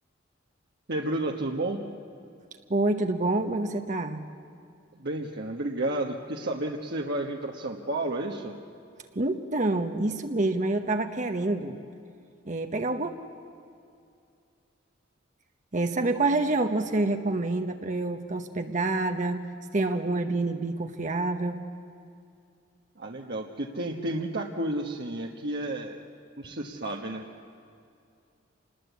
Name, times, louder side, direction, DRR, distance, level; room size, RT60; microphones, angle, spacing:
voice 1, 0.9-1.8 4.9-8.5 23.0-26.0 26.4-27.3, right 1 dB, 60° right, 1 dB, 1.3 m, -31 dB
voice 2, 2.7-4.2 9.1-11.7 12.5-13.1 15.7-19.4 19.7-21.6, right 2 dB, 40° right, 6 dB, 1.0 m, -27 dB
27.0 x 20.5 x 8.3 m, 2.5 s
head